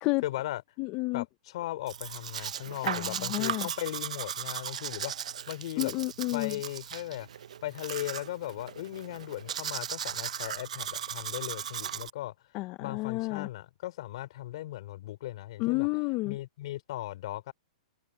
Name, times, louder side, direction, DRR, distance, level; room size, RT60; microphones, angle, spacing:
voice 1, 0.2-0.6 1.1-5.9 6.3-7.3 7.6-12.3 12.8-15.9 16.2-17.5, left 15 dB, 55° left, 3.2 m, -37 dB
voice 2, 0.8-1.2 2.8-3.7 5.8-6.6 12.5-13.5 15.6-16.4, left 23 dB, 35° left, 0.6 m, -30 dB
Domestic sounds home sounds, 1.9-12.1, right 9 dB, 80° right, 0.6 m, -37 dB
hypercardioid pair, 145°, 4 cm